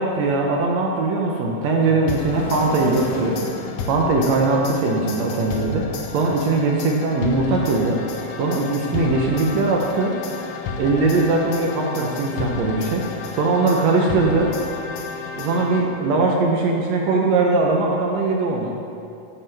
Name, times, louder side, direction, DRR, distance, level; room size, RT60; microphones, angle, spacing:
voice 1, 0.0-3.4 3.9-8.0 8.4-10.2 10.8-13.1 13.3-14.5 15.4-18.8, right 3 dB, 75° right, 0 dB, 1.6 m, -20 dB
sound 1, 2.1-16.2, left 4 dB, 90° left, 1.5 m, -32 dB
sound 2, 2.2-3.8, left 1 dB, 50° left, 1.8 m, -32 dB
13.0 x 8.5 x 3.4 m, 2.5 s
omnidirectional pair, 4.1 m